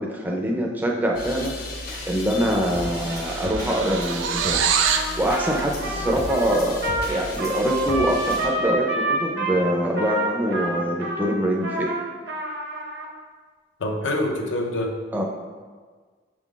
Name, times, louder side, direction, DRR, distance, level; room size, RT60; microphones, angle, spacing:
voice 1, 0.0-4.6 5.2-12.0 15.1-15.2, equal, 10° right, -1 dB, 0.4 m, -24 dB
sound 1, 1.1-8.5, left 2 dB, 50° left, 0.7 m, -34 dB
sound 2, 2.0-2.2 2.4-5.1, right 7 dB, 85° right, 0.4 m, -25 dB
Trumpet, 4.8-13.1, right 1 dB, 65° right, 0.7 m, -28 dB
voice 2, 13.8-14.9, left 1 dB, 85° left, 2 dB, 0.6 m, -25 dB
6.0 x 3.7 x 2.4 m, 1.5 s
head